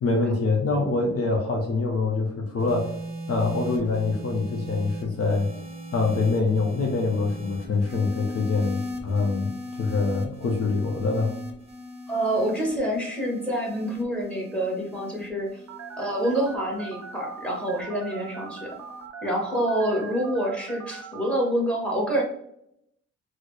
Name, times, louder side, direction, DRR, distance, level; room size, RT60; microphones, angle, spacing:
voice 1, 0.0-2.9 3.3-5.5 5.9-11.3, left 3 dB, 50° left, 1 dB, 0.7 m, -25 dB
sound 1, 2.6-19.1 20.0-20.3, equal, 20° right, 0.8 m, -39 dB
voice 2, 12.1-15.6 16.0-18.7 19.2-22.2, right 1 dB, 5° left, -1 dB, 1.2 m, -27 dB
Telephone, 15.7-21.5, right 6 dB, 60° right, 0.6 m, -41 dB
4.0 x 2.1 x 3.1 m, 0.74 s
cardioid pair, 90°, 30 cm